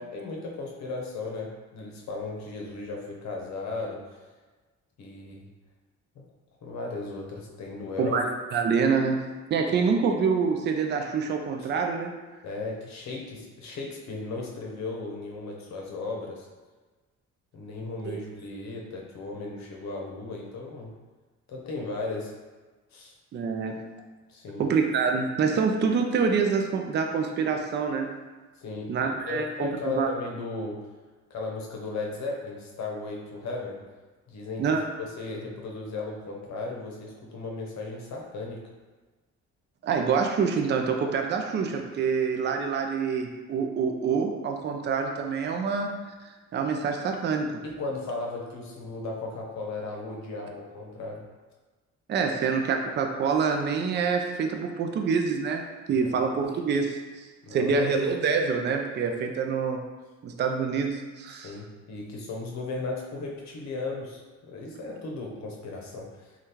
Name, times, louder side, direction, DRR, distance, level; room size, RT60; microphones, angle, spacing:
voice 1, 0.1-4.2 5.0-5.5 6.2-6.3 6.6-8.2 11.6-11.7 12.4-16.5 17.5-20.9 21.5-22.3 22.9-23.1 24.3-24.6 28.6-30.8 31.3-33.8 34.3-34.7 35.0-38.6 47.6-51.2 55.9-56.1 57.4-57.9 61.4-66.4, left 3 dB, 65° left, -1 dB, 0.8 m, -36 dB
voice 2, 8.0-9.2 9.5-12.1 18.1-18.2 23.3-23.8 24.6-28.1 28.9-30.1 34.6-34.8 39.8-45.9 46.2-47.6 52.1-55.6 55.9-57.0 57.5-59.8 60.2-61.5, right 5 dB, 35° right, 4 dB, 0.4 m, -26 dB
3.4 x 2.3 x 2.8 m, 1.3 s
cardioid pair, 90°, 30 cm